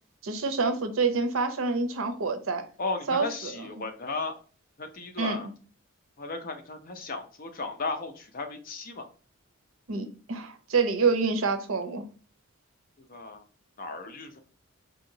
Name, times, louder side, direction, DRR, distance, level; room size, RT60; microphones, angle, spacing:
voice 1, 0.2-2.6 3.1-3.8 5.2-5.5 9.9-12.0, right 4 dB, 80° right, 0.6 m, -27 dB
voice 2, 2.8-4.3 4.8-5.5 6.2-9.1 13.1-13.4 13.8-14.4, left 3 dB, 45° left, 0.6 m, -35 dB
4.2 x 2.8 x 2.7 m
head